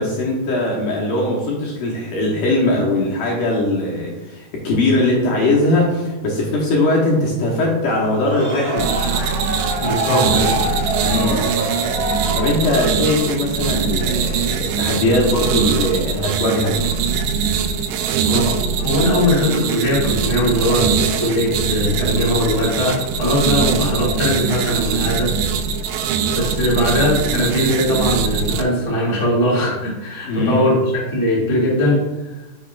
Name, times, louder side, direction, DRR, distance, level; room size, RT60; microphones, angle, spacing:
voice 1, 0.0-8.9 11.0-11.5 12.3-16.9 30.2-30.7, left 2 dB, 70° left, -4 dB, 2.3 m, -20 dB
sound 1, 8.0-13.1, right 1 dB, 60° right, 1.2 m, -25 dB
sound 2, 8.8-28.6, right 6 dB, 90° right, 2.7 m, -22 dB
voice 2, 9.8-10.5 11.3-11.6 18.2-25.3 26.3-30.8 31.1-32.4, left 1 dB, 20° left, -6 dB, 0.8 m, -20 dB
10.0 x 6.3 x 2.4 m, 1.1 s
omnidirectional pair, 4.8 m